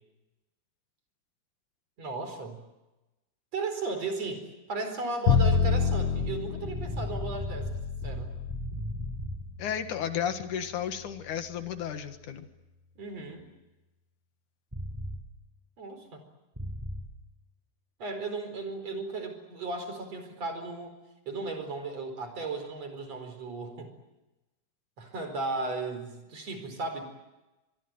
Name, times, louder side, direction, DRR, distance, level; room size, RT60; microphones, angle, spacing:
voice 1, 2.0-2.6 3.5-7.7 8.0-8.3 13.0-13.5 15.8-16.2 18.0-21.0 21.3-23.9 25.0-27.0, right 3 dB, 55° right, 7 dB, 5.6 m, -35 dB
Bowed string instrument, 5.3-11.4, left 6 dB, 60° left, 1.8 m, -29 dB
sound 1, 6.2-9.4 14.7-15.2 16.6-17.0, equal, 5° right, 4.8 m, -36 dB
voice 2, 9.6-12.5, left 9 dB, 85° left, 8 dB, 3.1 m, -33 dB
25.5 x 21.5 x 9.3 m, 1.0 s
omnidirectional pair, 3.5 m